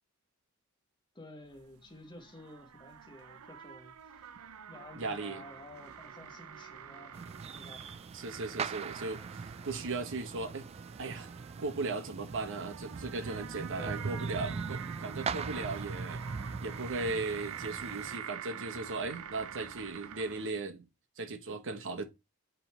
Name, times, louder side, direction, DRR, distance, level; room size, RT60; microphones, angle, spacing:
voice 1, 1.1-4.3 4.7-7.2 7.5-7.9 13.7-14.6 15.5-15.7, left 1 dB, 20° left, 1.4 m, -51 dB
sound 1, 1.5-20.5, right 8 dB, 80° right, 0.6 m, -47 dB
voice 2, 5.0-5.4 8.1-10.7 11.0-11.3 11.6-16.2 16.6-20.8 21.2-22.0, right 3 dB, 60° right, 1.0 m, -37 dB
sound 2, 7.1-18.2, right 5 dB, 30° right, 0.3 m, -41 dB
8.0 x 3.9 x 4.3 m
head